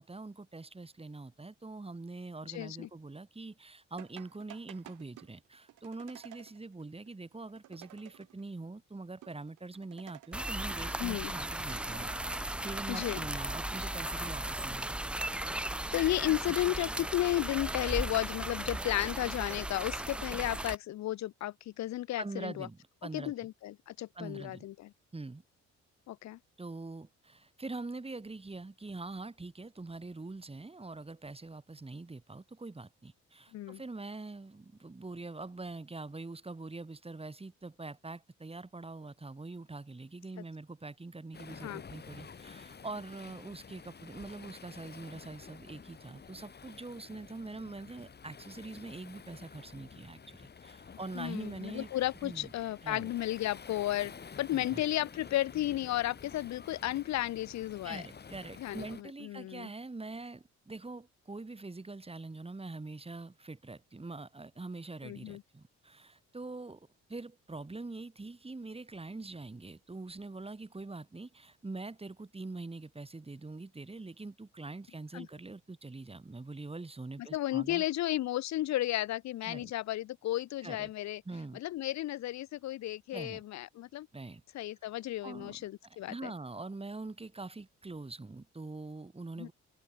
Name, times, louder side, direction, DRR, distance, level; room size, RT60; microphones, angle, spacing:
voice 1, 0.0-15.1 22.2-23.3 24.1-24.6 25.1-25.4 26.6-51.9 52.2-52.5 52.8-53.1 54.5-54.8 57.8-77.8 79.4-79.7 80.6-80.9 81.3-81.6 83.1-83.4 84.1-84.4 84.8-84.9 85.2-89.5, right 3 dB, 20° right, 7.1 m, -44 dB
voice 2, 2.5-2.9 11.0-11.3 12.9-13.2 15.9-22.7 23.1-24.9 26.1-26.4 33.5-33.8 41.6-41.8 51.1-54.1 54.4-58.1 58.6-59.7 65.0-65.4 75.1-75.3 77.2-81.2 81.5-84.1 84.5-86.3 89.4-89.5, left 14 dB, 65° left, 0.7 m, -33 dB
sound 1, 4.0-8.6 8.9-9.0 9.2-11.0 11.3-12.6 13.0-14.3 14.8-14.9 15.4-16.6 17.2-18.5 18.9-20.4, right 15 dB, 85° right, 6.1 m, -55 dB
sound 2, 10.3-20.8, right 1 dB, 5° right, 0.3 m, -36 dB
Waves surf, 41.3-59.0, left 6 dB, 35° left, 1.5 m, -50 dB
cardioid pair, 90°, 30 cm